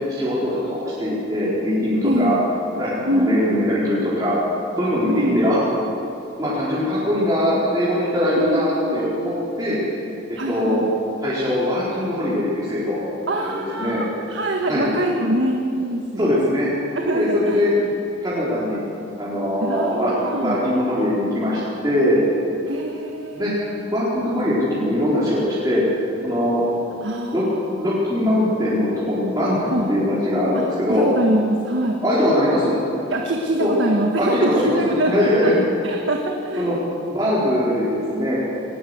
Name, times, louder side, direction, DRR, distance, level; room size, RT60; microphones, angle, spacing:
voice 1, 0.1-2.4 2.7-4.4 4.8-5.6 6.4-9.8 10.3-10.9 11.2-13.0 13.5-14.0 14.7-14.9 16.2-16.7 17.1-17.7 18.2-18.8 19.2-22.2 23.3-25.8 26.2-26.6 27.3-27.5 27.8-31.1 32.0-32.8 33.6-33.7 34.2-35.5 36.6-36.7 37.1-38.4, left 1 dB, 20° right, -10 dB, 4.5 m, -21 dB
voice 2, 2.0-2.4 3.1-3.4 5.1-5.6 8.4-9.3 10.4-10.9 13.3-16.4 17.0-17.9 19.6-20.6 22.7-23.7 27.0-27.4 29.7-29.9 30.9-32.0 33.1-35.5 35.8-36.8, right 1 dB, 70° right, 1 dB, 1.6 m, -24 dB
20.5 x 19.5 x 8.1 m, 2.9 s
head